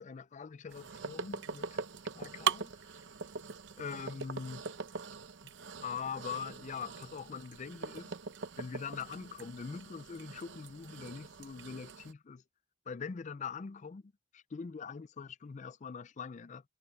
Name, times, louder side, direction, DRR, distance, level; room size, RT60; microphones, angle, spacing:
voice 1, 0.0-1.8 2.1-3.0 3.8-4.7 5.4-5.5 5.8-8.1 8.6-12.4 12.9-16.6, left 6 dB, 40° left, 0.4 m, -43 dB
sound 1, 0.7-12.1, right 5 dB, 80° right, 0.8 m, -41 dB
head